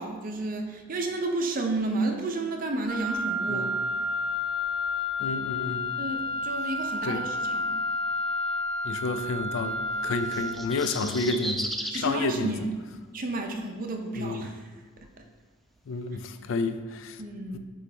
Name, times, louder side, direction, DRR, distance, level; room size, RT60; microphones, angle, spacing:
voice 1, 0.0-3.7 5.7-7.7 10.8-11.3 11.9-12.8 13.1-14.7 17.2-17.6, right 2 dB, 45° right, 3 dB, 0.6 m, -32 dB
Wind instrument woodwind instrument, 2.9-10.6, left 2 dB, 85° right, 0.6 m, -30 dB
voice 2, 5.2-5.9 7.0-7.2 8.8-12.5 14.2-14.4 15.9-17.2 17.5-17.6, left 3 dB, 70° left, 10 dB, 0.4 m, -30 dB
sound 1, 10.2-12.1 13.5-13.6, equal, ahead, 0.3 m, -34 dB
9.3 x 3.1 x 3.3 m, 1.3 s
head